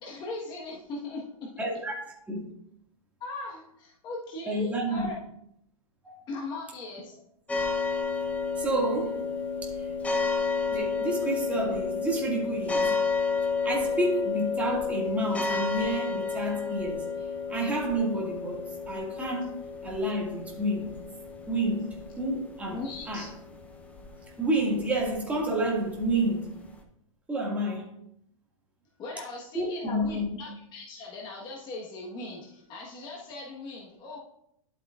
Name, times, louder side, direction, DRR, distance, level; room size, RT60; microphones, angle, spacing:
voice 1, 0.0-1.5 3.2-5.1 6.3-7.1 22.7-23.3 29.0-34.2, left 2 dB, 25° left, 1.4 m, -39 dB
voice 2, 1.6-2.0 2.3-2.5 4.5-5.1 6.0-6.2 8.6-9.2 9.6-9.9 10.7-13.0 13.6-17.0 17.5-21.0 21.5-22.8 23.1-23.3 24.4-26.5 27.3-27.9 29.5-30.4, right 1 dB, 10° right, 2.0 m, -29 dB
sound 1, 7.5-26.8, left 5 dB, 5° left, 0.8 m, -31 dB
12.0 x 8.0 x 2.5 m
hypercardioid pair, 150°, 18 cm